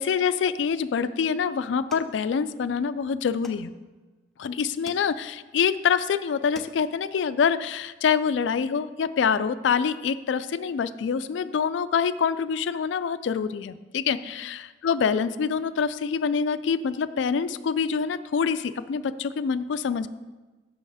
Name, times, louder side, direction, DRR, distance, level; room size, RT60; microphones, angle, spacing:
voice 1, 0.0-3.7 4.4-20.1, left 6 dB, 85° left, 14 dB, 0.4 m, -26 dB
sound 1, 1.9-2.9 3.4-4.2 4.9-5.6 6.0-6.1 6.4-7.1, left 1 dB, ahead, 0.5 m, -48 dB
7.7 x 6.3 x 4.8 m, 1.2 s
head